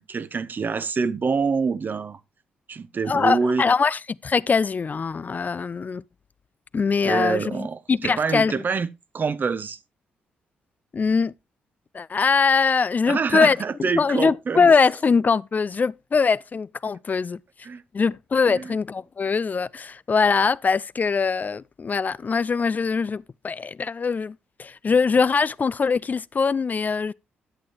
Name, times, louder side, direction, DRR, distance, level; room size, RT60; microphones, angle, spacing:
voice 1, 0.0-2.2 2.7-3.7 7.0-8.9 9.1-9.8 13.1-14.7 17.6-17.8 18.5-18.7, right 5 dB, 45° right, 0.9 m, -26 dB
voice 2, 3.1-6.0 6.7-8.5 10.9-11.3 11.9-13.6 13.9-17.4 17.9-27.1, left 5 dB, 40° left, 0.4 m, -22 dB
11.0 x 8.6 x 2.9 m
hypercardioid pair, 45°, 4 cm